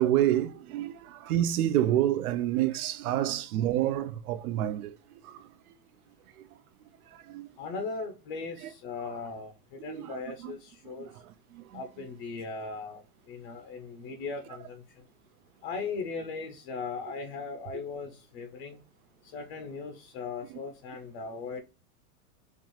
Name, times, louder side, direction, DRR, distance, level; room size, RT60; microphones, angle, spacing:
voice 1, 0.0-5.0 5.2-5.4 7.3-7.5 9.9-10.1 10.4-10.5 11.5-11.6, right 12 dB, 70° right, 0.5 m, -28 dB
voice 2, 7.6-11.1 11.7-13.0 13.3-14.8 15.6-18.8 19.2-21.6, left 4 dB, 40° left, 0.6 m, -38 dB
4.3 x 2.4 x 3.1 m
supercardioid pair, 155°, 45 cm